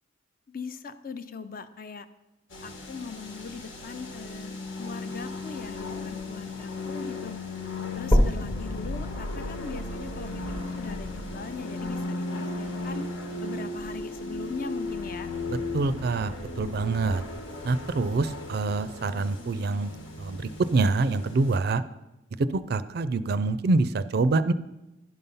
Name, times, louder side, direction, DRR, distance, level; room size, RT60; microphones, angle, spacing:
voice 1, 0.5-2.1 2.6-7.3 7.9-13.1 13.4-15.3, left 4 dB, 50° left, 11 dB, 0.5 m, -40 dB
sound 1, 2.5-21.6, left 2 dB, 85° left, 1.4 m, -36 dB
sound 2, 8.1-12.1 12.7-12.8 13.3-13.4 13.8-13.9 14.7-14.8, equal, 30° left, 0.9 m, -29 dB
voice 2, 15.7-17.2 17.6-19.9 20.2-21.8 22.4-24.5, right 3 dB, 55° right, 13 dB, 0.4 m, -26 dB
11.0 x 5.5 x 5.5 m, 0.99 s
head